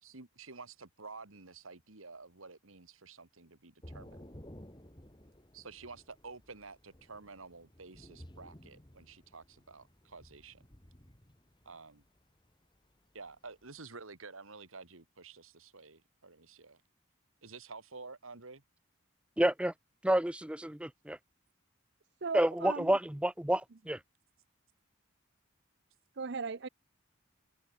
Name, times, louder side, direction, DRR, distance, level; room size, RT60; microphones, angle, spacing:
voice 1, 0.0-4.3 5.5-10.6 11.6-12.0 13.1-16.8 17.4-18.6, right 4 dB, 85° right, 2.5 m, -50 dB
Thunder / Rain, 3.8-13.8, equal, 20° left, 2.4 m, -55 dB
voice 2, 19.4-19.7 20.0-21.2 22.3-24.0, right 1 dB, 5° right, 0.5 m, -29 dB
voice 3, 22.2-22.9 26.1-26.7, right 4 dB, 55° right, 0.6 m, -37 dB
head